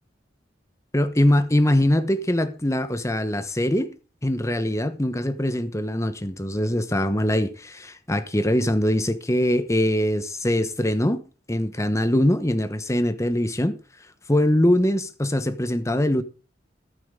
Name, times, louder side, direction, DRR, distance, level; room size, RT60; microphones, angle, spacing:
voice 1, 0.9-3.9 4.2-11.2 11.5-13.8 14.3-16.2, left 1 dB, 15° left, 1.1 m, -22 dB
14.5 x 11.5 x 3.8 m
head